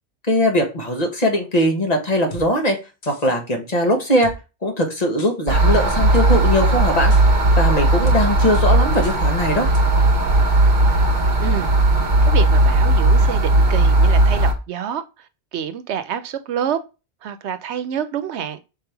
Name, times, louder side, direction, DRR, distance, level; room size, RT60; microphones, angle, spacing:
voice 1, 0.3-2.8 3.1-4.3 4.6-7.1 7.6-9.7, equal, 35° left, 1.6 m, -20 dB
sound 1, 2.3-2.5 3.0-3.4 4.2-4.4 5.2-5.3 5.9-6.3 7.1-7.2 8.1-8.2 8.5-8.7 9.0-9.2 9.7-9.8, right 1 dB, 70° left, 1.5 m, -35 dB
sound 2, 5.5-14.5, right 2 dB, 45° right, 1.2 m, -16 dB
voice 2, 11.4-11.7 12.2-15.0 15.5-16.8 17.2-18.6, right 8 dB, 85° right, 1.0 m, -27 dB
6.2 x 3.5 x 4.5 m
omnidirectional pair, 1.1 m